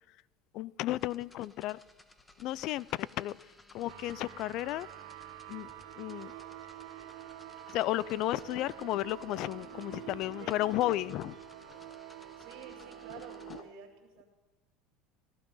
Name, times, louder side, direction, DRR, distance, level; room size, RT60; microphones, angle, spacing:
voice 1, 0.5-1.8 2.4-4.9 5.5-6.3 7.7-11.8 13.5-13.6, left 15 dB, 60° left, 22 dB, 0.4 m, -34 dB
sound 1, 1.0-13.6, left 2 dB, 15° left, 1.4 m, -59 dB
sound 2, 3.9-13.6, right 12 dB, 80° right, 1.3 m, -47 dB
voice 2, 10.4-10.9 12.4-14.2, right 6 dB, 65° right, -2 dB, 2.5 m, -50 dB
16.0 x 12.0 x 5.5 m, 1.1 s
hypercardioid pair, 85°, 0 cm